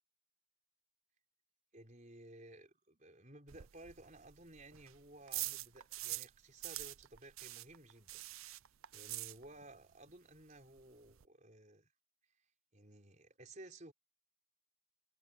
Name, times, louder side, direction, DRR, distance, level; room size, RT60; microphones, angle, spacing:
voice 1, 1.7-8.2 8.9-11.9 12.7-13.9, right 1 dB, 35° right, 5.1 m, -56 dB
sound 1, 3.5-6.4 6.6-9.8 10.1-10.2 10.5-10.6 10.8-11.3, right 17 dB, 80° right, 0.6 m, -45 dB
head